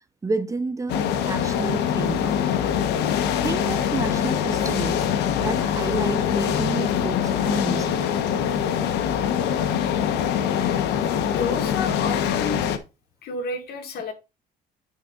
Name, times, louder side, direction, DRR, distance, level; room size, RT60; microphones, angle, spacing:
voice 1, 0.2-2.5 3.4-5.1 5.4-8.1, right 3 dB, 20° right, 0.6 m, -30 dB
sound 1, 0.9-12.8, left 8 dB, 85° left, 1.1 m, -23 dB
voice 2, 11.2-12.6 13.2-14.1, left 3 dB, 70° left, 2.1 m, -31 dB
9.7 x 5.0 x 3.9 m
cardioid pair, 110°, 17 cm